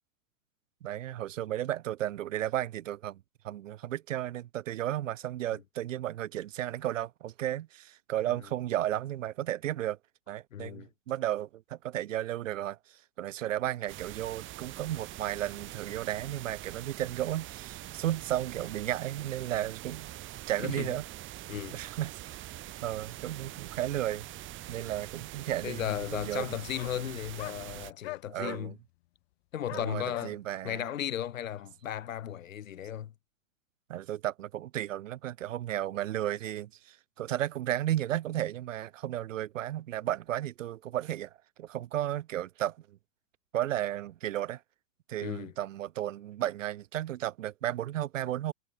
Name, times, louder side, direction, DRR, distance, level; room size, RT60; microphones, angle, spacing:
voice 1, 0.8-10.0 10.3-20.1 20.5-21.1 21.7-22.4 22.8-24.3 24.7-25.8 26.1-26.6 28.3-28.8 29.7-30.8 33.9-41.3 41.6-43.0 43.5-44.6 45.1-48.5, right 12 dB, 75° right, 3.8 m, -34 dB
voice 2, 10.5-10.9 20.6-20.9 21.5-21.8 25.6-28.8 29.5-30.4 30.6-33.1 45.2-45.5, left 10 dB, 85° left, 3.3 m, -35 dB
sound 1, 13.9-27.9, right 15 dB, 30° right, 3.7 m, -44 dB
sound 2, 23.9-24.0 24.9-25.0 25.2-25.3 25.6-25.7 26.7-26.9 27.4-27.6 28.0-28.6 29.7-30.3, left 22 dB, 50° left, 7.2 m, -41 dB
hypercardioid pair, 140°, 39 cm